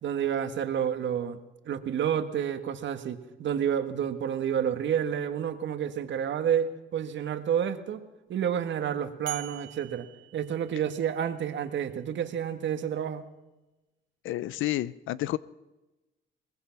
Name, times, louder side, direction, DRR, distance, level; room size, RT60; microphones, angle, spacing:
voice 1, 0.0-1.4 1.7-8.0 8.3-10.1 10.3-13.3, right 9 dB, 65° right, 9 dB, 1.7 m, -29 dB
sound 1, 9.3-11.3, right 16 dB, 85° right, 2.1 m, -43 dB
voice 2, 14.2-15.4, left 15 dB, 80° left, 18 dB, 0.6 m, -30 dB
22.5 x 20.0 x 5.9 m, 1.1 s
cardioid pair, 90°, 20 cm